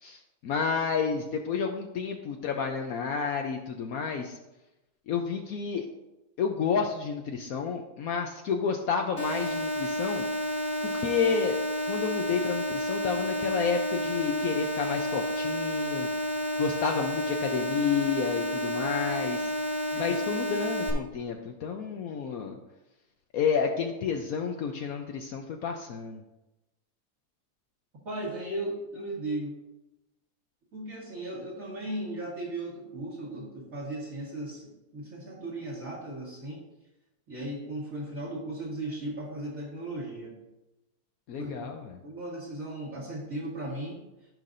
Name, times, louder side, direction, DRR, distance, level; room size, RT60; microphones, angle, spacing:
voice 1, 0.0-4.4 5.1-5.9 6.4-10.3 10.8-11.6 11.9-16.1 16.6-19.5 20.0-22.6 23.3-26.2 41.3-41.9, left 6 dB, 70° left, 3 dB, 1.1 m, -30 dB
sound 1, 9.2-20.9, equal, 10° left, 1.5 m, -30 dB
voice 2, 28.1-29.6 30.7-36.6 37.3-40.4 41.4-41.7 42.0-44.0, right 1 dB, 55° right, -8 dB, 2.0 m, -36 dB
13.5 x 5.8 x 2.6 m, 0.98 s
omnidirectional pair, 1.7 m